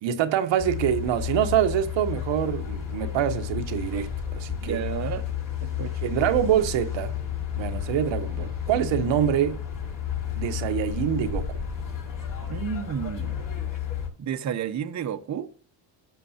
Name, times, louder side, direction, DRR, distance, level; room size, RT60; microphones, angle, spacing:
voice 1, 0.0-4.8 6.0-7.1 7.6-9.6 10.4-11.6, right 10 dB, 70° right, 1.1 m, -25 dB
sound 1, 0.6-14.1, left 9 dB, 45° left, 5.2 m, -32 dB
voice 2, 4.6-5.2 5.6-5.9 12.5-13.4 14.2-15.5, right 8 dB, 35° right, 0.9 m, -31 dB
15.0 x 6.9 x 2.8 m
cardioid pair, 115°, 46 cm